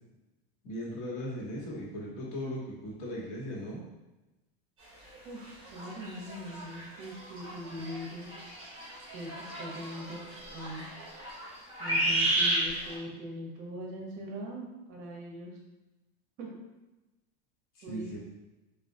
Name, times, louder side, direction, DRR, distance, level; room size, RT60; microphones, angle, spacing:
voice 1, 0.6-3.8 17.7-18.2, equal, 60° left, -5 dB, 1.2 m, -38 dB
sound 1, 5.0-5.1 5.5-12.9, right 1 dB, 15° right, 1.3 m, -33 dB
voice 2, 5.2-8.3 9.1-10.2 10.5-10.9 11.8-15.5 16.4-16.5 17.8-18.2, equal, 45° right, -1 dB, 0.7 m, -41 dB
3.8 x 2.3 x 2.6 m, 1.1 s
supercardioid pair, 150°, 31 cm